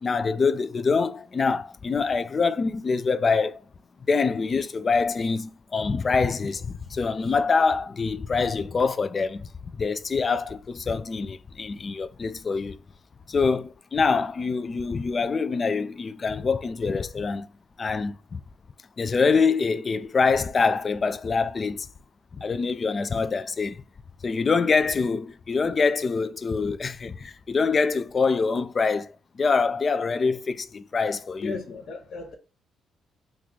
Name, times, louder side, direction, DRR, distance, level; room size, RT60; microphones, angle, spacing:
voice 1, 0.0-3.6 4.1-9.5 9.8-12.8 13.3-17.5 17.8-18.4 19.0-21.9 22.3-23.8 24.2-29.1 29.4-31.6, left 4 dB, 40° left, 0.3 m, -25 dB
voice 2, 31.4-32.4, left 4 dB, 60° left, 0.7 m, -36 dB
3.1 x 2.4 x 3.7 m
cardioid pair, 90°, 0 cm